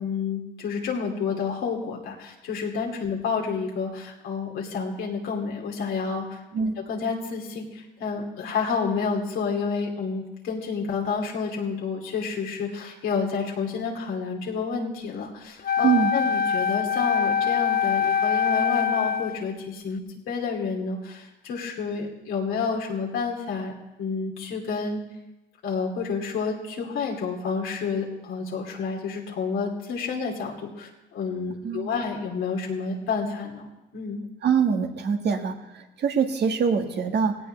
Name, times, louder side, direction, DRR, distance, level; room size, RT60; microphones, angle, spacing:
voice 1, 0.0-20.0 20.3-25.0 25.6-33.7 33.9-34.2, left 5 dB, 85° left, -2 dB, 2.7 m, -29 dB
Wind instrument woodwind instrument, 15.6-19.4, left 8 dB, 50° left, 0.6 m, -24 dB
voice 2, 34.4-37.4, right 6 dB, 60° right, 4 dB, 1.7 m, -24 dB
17.0 x 17.0 x 3.3 m, 0.98 s
cardioid pair, 90°, 20 cm